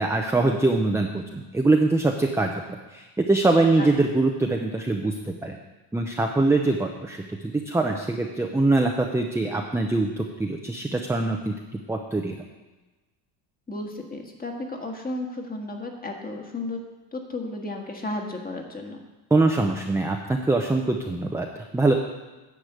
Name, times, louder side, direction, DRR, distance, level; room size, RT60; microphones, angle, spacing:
voice 1, 0.0-5.6 5.9-11.5 11.9-12.4 19.3-21.9, right 2 dB, 5° right, 2 dB, 0.6 m, -23 dB
voice 2, 13.7-16.8 17.1-19.0, left 2 dB, 20° left, 2 dB, 1.5 m, -33 dB
9.9 x 5.0 x 8.0 m, 1.2 s
cardioid pair, 120°, 47 cm